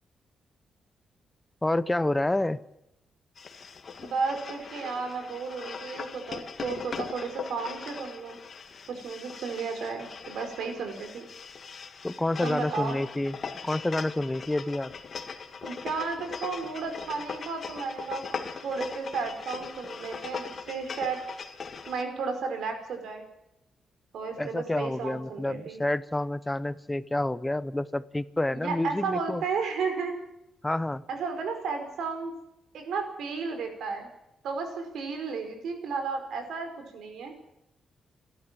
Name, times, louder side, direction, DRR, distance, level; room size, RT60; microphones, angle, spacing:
voice 1, 1.6-2.6 12.0-13.4 13.6-14.9 24.4-29.4 30.6-31.0, left 1 dB, 10° left, 16 dB, 0.7 m, -28 dB
sound 1, 3.3-22.0, left 5 dB, 40° left, 1.9 m, -40 dB
voice 2, 4.0-8.4 8.9-11.2 12.4-13.0 15.6-21.2 21.9-23.2 24.1-25.8 28.5-30.2 31.1-32.3 32.7-34.1 34.4-37.3, right 5 dB, 80° right, 6 dB, 4.9 m, -33 dB
29.5 x 12.5 x 7.5 m, 0.86 s
wide cardioid pair, 150°, 0 cm